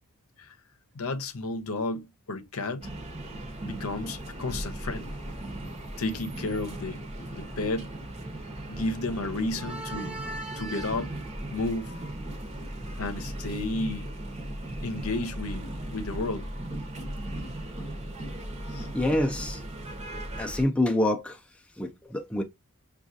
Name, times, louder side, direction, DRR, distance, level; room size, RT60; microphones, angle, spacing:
voice 1, 0.9-2.9 3.6-5.1 6.0-7.9 8.7-10.2 10.6-11.1 11.5-11.9 13.0-14.1 14.8-16.5 18.7-18.9, left 2 dB, 70° left, 0.7 m, -32 dB
sound 1, 2.8-20.6, right 1 dB, 30° right, 0.9 m, -37 dB
voice 2, 18.9-19.6 20.4-21.4 21.8-22.4, left 1 dB, 5° left, 0.5 m, -26 dB
6.0 x 2.4 x 2.6 m
head